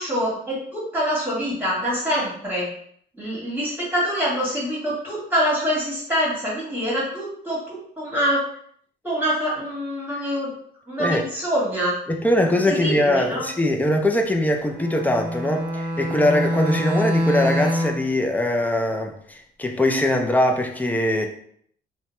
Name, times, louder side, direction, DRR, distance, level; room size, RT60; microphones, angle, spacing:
voice 1, 0.0-2.7 3.2-8.4 9.0-10.5 10.9-11.9 12.7-13.5, equal, 10° right, -5 dB, 1.5 m, -25 dB
voice 2, 12.1-21.3, left 1 dB, 10° left, 3 dB, 0.4 m, -22 dB
Bowed string instrument, 14.7-18.1, equal, 35° right, 0.8 m, -25 dB
2.7 x 2.1 x 3.1 m, 0.64 s
cardioid pair, 90°, 20 cm